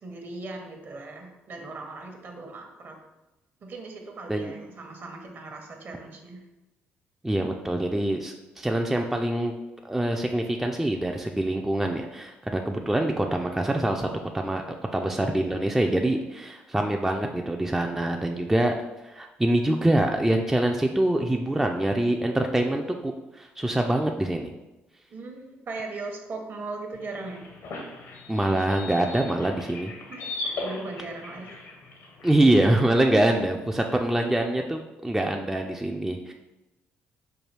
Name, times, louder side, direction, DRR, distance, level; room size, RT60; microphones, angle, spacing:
voice 1, 0.0-3.0 3.6-6.4 16.8-17.1 25.1-27.5 30.1-31.5, right 3 dB, 50° right, 2 dB, 0.8 m, -39 dB
voice 2, 7.2-9.5 9.8-14.1 14.3-14.6 14.9-18.7 19.0-24.5 28.3-29.9 32.2-36.3, right 1 dB, 10° right, 3 dB, 0.3 m, -25 dB
sound 1, 26.9-32.4, left 2 dB, 75° left, 0.8 m, -38 dB
4.6 x 2.3 x 3.3 m, 1.0 s
supercardioid pair, 70°, 5 cm